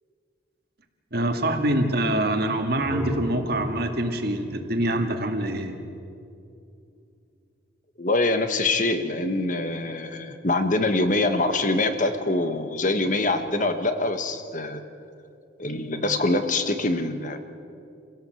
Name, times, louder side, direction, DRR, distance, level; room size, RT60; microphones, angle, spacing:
voice 1, 1.1-5.8, right 1 dB, 55° right, 5 dB, 2.0 m, -25 dB
sound 1, 2.5-6.2, equal, 10° left, 4.1 m, -37 dB
voice 2, 8.0-14.8 15.6-17.4, left 2 dB, 40° left, 8 dB, 1.4 m, -24 dB
27.5 x 17.0 x 7.8 m, 2.6 s
head